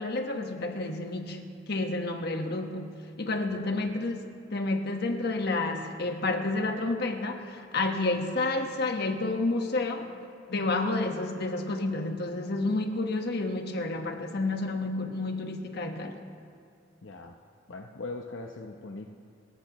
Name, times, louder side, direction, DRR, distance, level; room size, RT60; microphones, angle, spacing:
voice 1, 0.0-1.4 1.7-2.9 3.2-10.1 10.5-16.2, left 2 dB, 60° left, 4 dB, 1.3 m, -30 dB
voice 2, 3.5-3.9 17.0-17.3 17.7-19.1, left 3 dB, 75° left, 2 dB, 0.8 m, -41 dB
29.5 x 14.0 x 3.1 m, 2.4 s
head